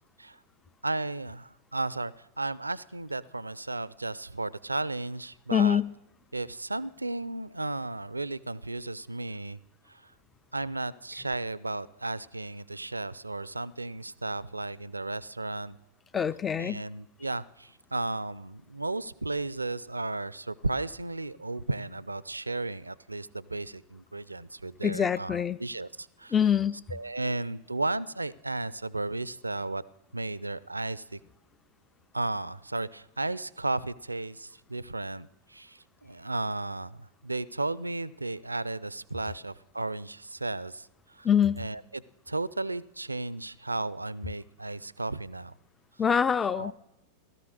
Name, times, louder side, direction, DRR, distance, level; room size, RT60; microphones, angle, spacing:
voice 1, 0.8-5.8 6.3-9.6 9.9-10.1 10.5-15.8 16.6-26.3 26.9-29.8 30.1-31.2 32.1-41.3 41.6-42.0 42.3-45.5 46.5-46.7, right 2 dB, 80° right, 21 dB, 0.5 m, -34 dB
voice 2, 5.5-5.9 16.1-16.8 24.8-25.6 26.3-26.8 41.2-41.7 46.0-46.7, left 8 dB, 20° left, 17 dB, 0.5 m, -25 dB
16.5 x 13.5 x 6.5 m, 0.96 s
figure-of-eight pair, 90°, 0 cm